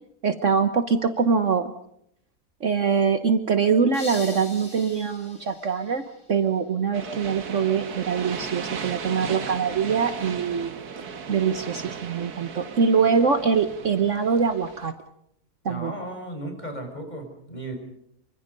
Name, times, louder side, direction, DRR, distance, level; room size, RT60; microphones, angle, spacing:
voice 1, 0.2-1.7 2.6-6.0 6.3-10.7 11.3-14.9 15.6-15.9, right 6 dB, 50° right, 9 dB, 1.4 m, -23 dB
sound 1, 3.9-6.7, left 2 dB, 45° left, 4.7 m, -42 dB
sound 2, 6.9-14.9, right 6 dB, 75° right, 2.1 m, -36 dB
voice 2, 15.6-17.8, right 1 dB, 25° left, 5 dB, 5.7 m, -35 dB
27.0 x 25.0 x 5.4 m, 0.74 s
omnidirectional pair, 1.7 m